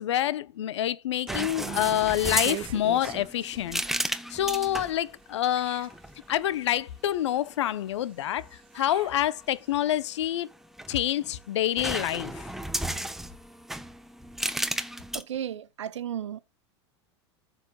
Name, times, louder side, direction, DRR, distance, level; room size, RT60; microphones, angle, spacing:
voice 1, 0.0-3.8 4.3-5.9 6.3-8.5 8.7-10.5 10.9-12.5, left 12 dB, 80° left, 0.8 m, -27 dB
sound 1, 1.2-5.2 5.5-7.1 7.9-9.7, right 12 dB, 35° right, 0.8 m, -42 dB
sound 2, 1.3-5.0 5.9-6.3 10.5-11.3 11.8-15.2, right 1 dB, ahead, 1.1 m, -33 dB
voice 2, 15.1-16.4, right 10 dB, 90° right, 0.7 m, -34 dB
14.0 x 7.7 x 2.3 m
hypercardioid pair, 100°, 15 cm